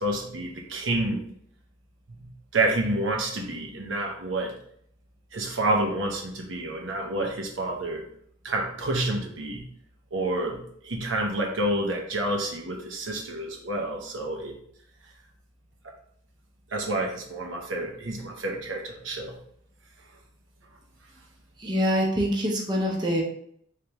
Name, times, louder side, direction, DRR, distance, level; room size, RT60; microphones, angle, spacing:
voice 1, 0.0-1.3 2.2-4.5 5.3-8.0 8.4-9.6 10.1-14.5 16.7-19.4, right 1 dB, 75° right, 1 dB, 0.8 m, -29 dB
voice 2, 21.6-23.2, equal, 25° right, -1 dB, 0.7 m, -25 dB
3.3 x 3.3 x 2.9 m, 0.66 s
head